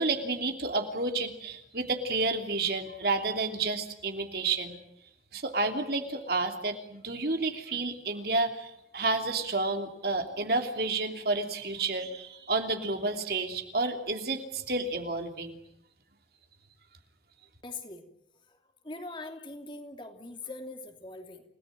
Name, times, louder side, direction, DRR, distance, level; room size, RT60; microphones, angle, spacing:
voice 1, 0.0-4.8 5.3-15.6, right 3 dB, 55° right, 5 dB, 3.0 m, -30 dB
voice 2, 17.6-18.0 18.5-21.4, left 2 dB, 25° left, 4 dB, 2.9 m, -42 dB
29.5 x 18.5 x 9.2 m, 0.82 s
head